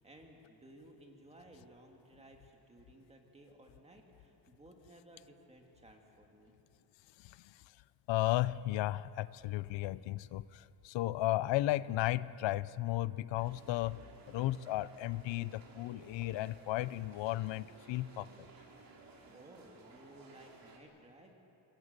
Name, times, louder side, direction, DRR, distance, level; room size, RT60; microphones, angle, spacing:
voice 1, 0.0-6.5 10.0-10.1 19.3-21.3, right 1 dB, 15° right, 2 dB, 2.1 m, -58 dB
voice 2, 8.1-14.0 14.3-18.3, left 16 dB, 85° left, 18 dB, 0.7 m, -34 dB
sound 1, 13.3-20.8, right 4 dB, 50° right, 3.4 m, -58 dB
27.0 x 22.0 x 6.7 m, 2.8 s
cardioid pair, 170°, 43 cm